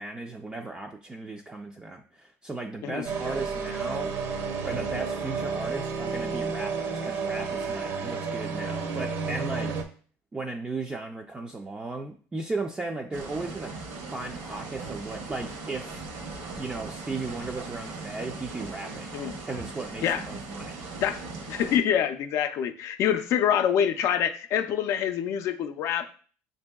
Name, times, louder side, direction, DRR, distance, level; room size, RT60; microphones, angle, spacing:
voice 1, 0.0-4.1 4.6-9.7 10.3-13.7 14.1-16.0 16.6-19.1 19.4-20.8, right 3 dB, 15° right, 1 dB, 0.4 m, -36 dB
sound 1, 3.0-9.8, right 5 dB, 55° right, 0.7 m, -31 dB
sound 2, 13.1-21.8, right 3 dB, 75° right, 1.0 m, -39 dB
voice 2, 21.5-26.1, left 9 dB, 55° left, 9 dB, 0.4 m, -26 dB
6.7 x 2.6 x 2.2 m, 0.42 s
cardioid pair, 130°, 6 cm